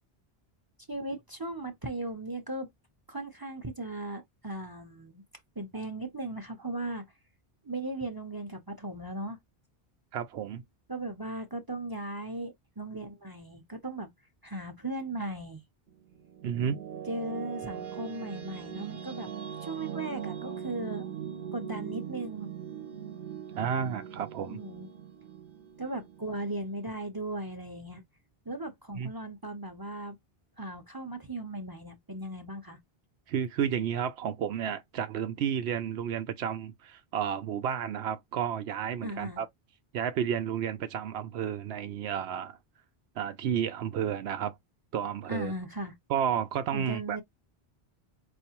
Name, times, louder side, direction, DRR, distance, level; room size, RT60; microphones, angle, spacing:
voice 1, 0.9-2.7 3.1-5.2 5.6-7.0 7.6-9.4 10.9-14.1 14.4-15.6 17.1-19.3 19.6-21.1 21.5-22.5 24.4-24.9 25.8-28.0 28.5-30.2 30.6-32.8 39.0-39.4 45.3-46.0 46.7-47.2, right 2 dB, 25° right, 0.7 m, -37 dB
voice 2, 10.1-10.6 16.4-16.8 23.5-24.6 28.9-29.1 33.3-39.5 39.9-42.6 43.2-44.6 44.9-45.5 46.1-47.2, right 8 dB, 90° right, 0.9 m, -31 dB
sound 1, 15.9-26.9, right 9 dB, 60° right, 0.9 m, -41 dB
4.7 x 2.5 x 2.8 m
omnidirectional pair, 1.1 m